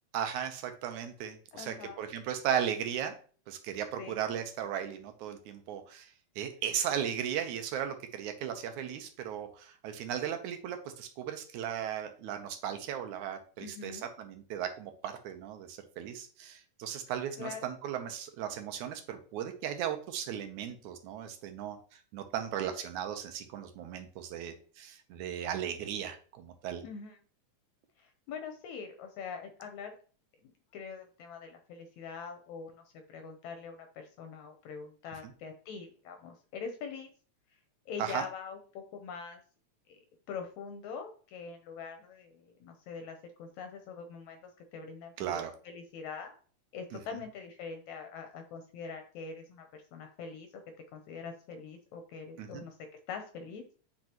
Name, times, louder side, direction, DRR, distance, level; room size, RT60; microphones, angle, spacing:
voice 1, 0.1-3.1 3.5-6.1 6.4-21.8 22.1-26.8 38.0-38.2 45.2-45.5 46.9-47.0 52.4-52.6, right 9 dB, 80° right, 7 dB, 2.2 m, -36 dB
voice 2, 1.5-2.1 4.0-4.2 13.6-14.1 17.4-17.6 26.8-27.2 28.0-30.0 30.4-32.8 33.1-37.1 37.9-39.4 39.9-40.0 40.3-44.4 44.7-46.3 46.7-50.6 50.9-52.8 53.1-53.6, left 5 dB, 75° left, 6 dB, 2.1 m, -43 dB
8.4 x 5.2 x 2.9 m, 0.41 s
omnidirectional pair, 3.5 m